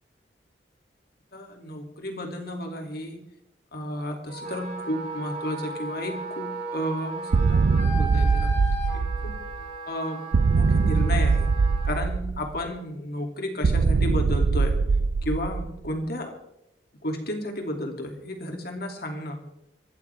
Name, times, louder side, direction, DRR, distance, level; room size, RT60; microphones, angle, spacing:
voice 1, 1.3-3.2 3.7-8.5 8.9-9.4 9.9-10.2 10.5-11.5 11.8-14.8 15.2-16.3 17.0-19.4, left 1 dB, 60° left, 3 dB, 2.9 m, -32 dB
Wind instrument woodwind instrument, 4.3-12.0, right 2 dB, 50° right, 6.1 m, -36 dB
sound 1, 7.3-9.6 10.3-12.6 13.6-15.9, right 4 dB, 85° right, 0.5 m, -22 dB
25.5 x 13.0 x 3.6 m, 0.81 s
head